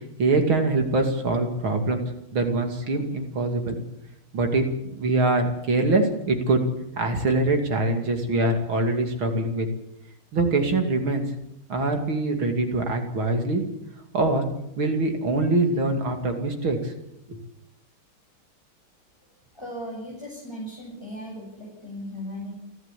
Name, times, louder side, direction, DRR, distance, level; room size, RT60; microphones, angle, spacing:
voice 1, 0.2-2.0 2.3-3.8 4.3-4.7 4.9-6.6 7.0-9.7 10.3-11.2 11.7-13.6 14.1-14.5 14.8-16.9 17.3-17.4, right 2 dB, 65° right, 4 dB, 3.4 m, -23 dB
voice 2, 19.5-22.5, equal, 10° left, -5 dB, 7.8 m, -37 dB
29.0 x 11.0 x 8.4 m, 0.83 s
omnidirectional pair, 2.4 m